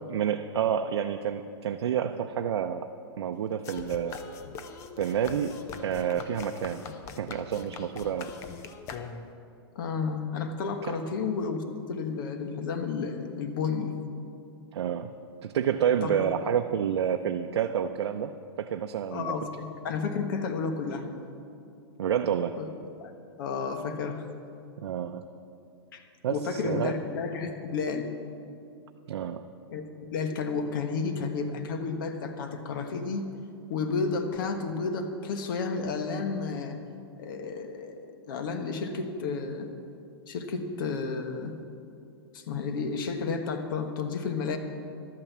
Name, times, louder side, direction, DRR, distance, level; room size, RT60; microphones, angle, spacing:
voice 1, 0.1-2.9 3.2-4.2 5.0-6.8 7.2-8.3 10.9-11.0 14.7-15.1 15.4-18.3 18.6-19.3 22.0-22.6 24.8-25.2 26.2-26.9 29.1-29.4, right 8 dB, 80° right, 5 dB, 0.6 m, -29 dB
sound 1, 3.6-9.5, left 5 dB, 20° left, 0.5 m, -42 dB
voice 2, 9.7-13.9 16.0-16.2 19.1-19.5 19.8-21.1 22.5-22.7 23.0-23.1 23.4-24.3 25.9-28.1 29.7-29.8 30.1-33.2 33.7-36.8 37.2-39.7 40.3-41.5 42.3-44.6, left 5 dB, 50° left, 6 dB, 1.3 m, -31 dB
12.0 x 9.0 x 7.3 m, 2.6 s
hypercardioid pair, 165°, 14 cm